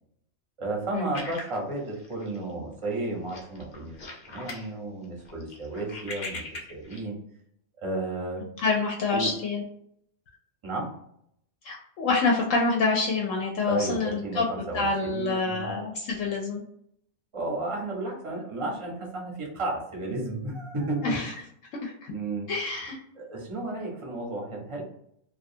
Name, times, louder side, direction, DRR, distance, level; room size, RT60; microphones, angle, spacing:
voice 1, 0.6-4.0 4.3-6.4 6.7-7.2 7.8-8.4 9.1-9.3 10.6-10.9 13.6-15.7 17.3-21.2 22.1-22.5 23.2-24.8, right 2 dB, 30° right, -1 dB, 0.6 m, -33 dB
sound 1, 1.1-2.5 2.8-3.0 3.3-4.7 5.0-7.0, left 2 dB, 50° left, 0.5 m, -40 dB
voice 2, 8.6-9.6 11.6-16.6 21.0-21.3 21.8-22.1 22.5-23.0, left 3 dB, 70° left, 0 dB, 0.9 m, -27 dB
2.4 x 2.3 x 2.6 m, 0.71 s
omnidirectional pair, 1.4 m